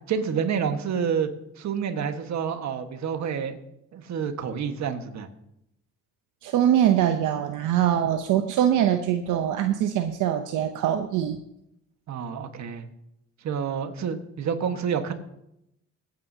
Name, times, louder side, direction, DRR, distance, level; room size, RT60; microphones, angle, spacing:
voice 1, 0.1-3.6 3.9-5.3 12.1-12.9 13.4-15.1, right 7 dB, 65° right, 7 dB, 1.5 m, -28 dB
voice 2, 6.4-11.4, right 10 dB, 85° right, 6 dB, 0.8 m, -23 dB
23.5 x 9.2 x 2.8 m, 0.82 s
cardioid pair, 90°, 30 cm